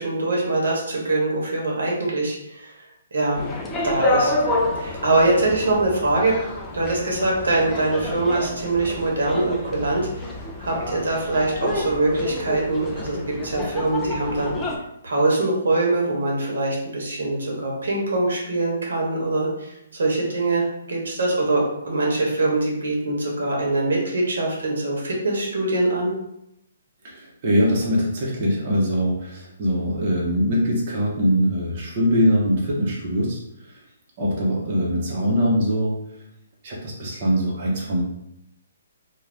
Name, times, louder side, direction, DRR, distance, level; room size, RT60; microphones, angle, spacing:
voice 1, 0.0-2.7 3.1-3.5 3.8-4.3 4.8-6.3 6.7-10.3 10.6-14.5 15.0-26.1, right 2 dB, 80° right, -2 dB, 1.0 m, -23 dB
sound 1, 3.4-14.8, left 2 dB, 10° left, 0.4 m, -28 dB
voice 2, 27.0-33.4 34.2-36.0 36.6-38.0, equal, 40° right, -4 dB, 0.7 m, -22 dB
2.5 x 2.2 x 3.3 m, 0.81 s
hypercardioid pair, 155°, 0 cm